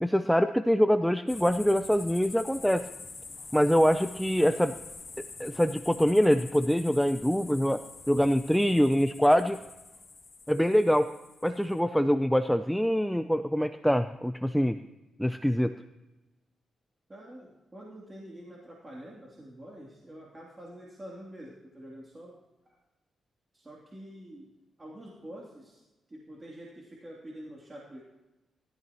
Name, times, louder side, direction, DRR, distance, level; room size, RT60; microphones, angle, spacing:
voice 1, 0.0-2.9 3.5-4.8 5.2-7.8 8.1-9.6 10.5-11.1 11.4-14.8 15.2-15.8, equal, ahead, 10 dB, 0.5 m, -24 dB
sound 1, 1.3-11.8, left 4 dB, 40° left, 1.5 m, -46 dB
voice 2, 17.1-22.4 23.5-24.5 24.8-25.8 26.1-28.0, right 1 dB, 25° right, -3 dB, 3.0 m, -46 dB
20.0 x 13.5 x 3.1 m, 1.1 s
cardioid pair, 70°, 0 cm